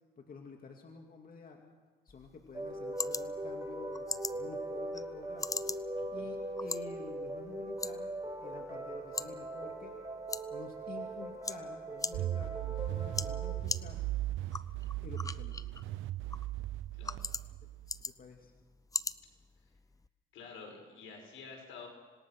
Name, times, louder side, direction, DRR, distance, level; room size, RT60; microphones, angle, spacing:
voice 1, 0.2-1.7 2.0-4.1 4.3-5.8 6.1-8.1 8.4-9.9 10.5-14.1 15.0-15.7 18.0-18.5, left 4 dB, 45° left, 2 dB, 2.5 m, -50 dB
sound 1, 2.1-20.1, left 3 dB, 15° left, 0.6 m, -43 dB
sound 2, 2.5-13.5, right 1 dB, 15° right, 5.6 m, -40 dB
voice 2, 6.0-6.3 16.9-17.3 20.3-21.9, left 5 dB, 85° left, 1 dB, 6.4 m, -49 dB
sound 3, 12.1-18.0, right 14 dB, 80° right, 0.6 m, -37 dB
26.0 x 19.5 x 6.1 m, 1.4 s
cardioid pair, 90°, 20 cm